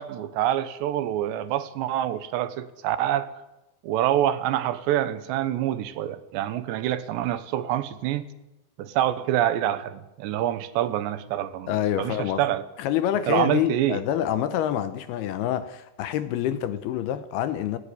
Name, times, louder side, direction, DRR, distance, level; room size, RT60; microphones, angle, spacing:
voice 1, 0.0-3.3 3.8-8.3 8.8-11.7 12.0-12.6 13.3-14.0, right 12 dB, 80° right, 3.2 m, -26 dB
voice 2, 11.7-12.4 12.8-17.8, left 11 dB, 75° left, 2.6 m, -27 dB
18.0 x 16.0 x 9.5 m
omnidirectional pair, 5.0 m